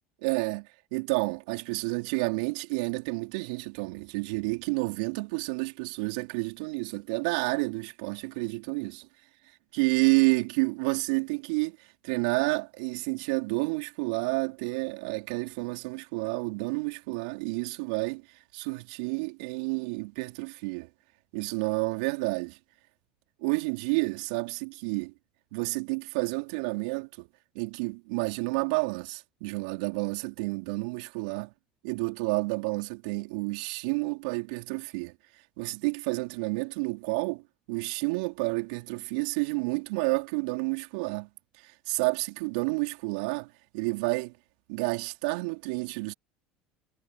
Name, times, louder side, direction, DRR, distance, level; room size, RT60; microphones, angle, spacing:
voice 1, 0.2-9.1 9.7-11.8 12.0-18.2 18.5-20.9 21.3-22.6 23.4-25.1 25.5-27.3 27.5-31.5 31.8-35.1 35.6-37.4 37.7-41.3 41.6-44.3 44.7-46.1, right 29 dB, 70° right, 4.0 m, -30 dB
hypercardioid pair, 75°, 4 cm